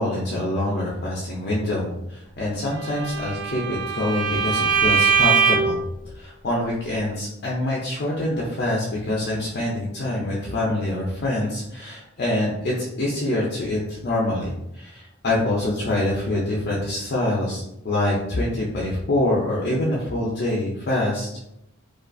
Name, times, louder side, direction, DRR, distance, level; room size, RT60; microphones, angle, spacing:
voice 1, 0.0-5.8 6.1-21.4, left 1 dB, 50° left, -4 dB, 0.4 m, -25 dB
Bowed string instrument, 2.8-5.8, right 6 dB, 65° right, 0.3 m, -21 dB
2.4 x 2.3 x 2.5 m, 0.83 s
head